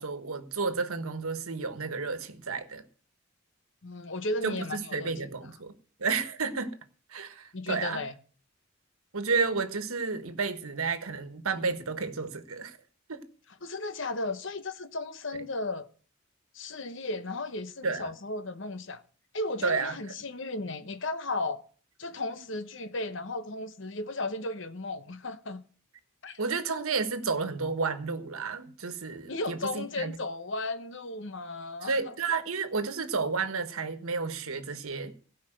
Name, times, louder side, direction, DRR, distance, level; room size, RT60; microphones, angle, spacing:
voice 1, 0.0-2.8 4.4-5.7 6.0-6.8 7.1-8.0 9.1-12.8 13.1-13.2 17.8-18.0 19.6-20.0 26.4-30.2 31.8-35.1, right 4 dB, 85° right, 1.4 m, -31 dB
voice 2, 3.8-5.1 7.5-8.1 13.6-15.9 16.5-19.0 19.3-21.6 22.0-25.6 26.2-26.4 29.3-32.1, left 2 dB, 60° left, 1.0 m, -35 dB
16.5 x 5.6 x 7.8 m
head